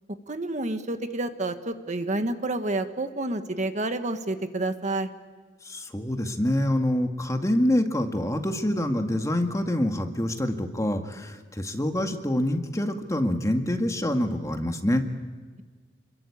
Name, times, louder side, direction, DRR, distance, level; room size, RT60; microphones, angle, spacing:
voice 1, 0.3-5.1, right 2 dB, 40° right, 8 dB, 1.5 m, -29 dB
voice 2, 5.7-15.0, left 1 dB, 15° left, 5 dB, 1.9 m, -26 dB
29.0 x 22.5 x 8.7 m, 1.5 s
head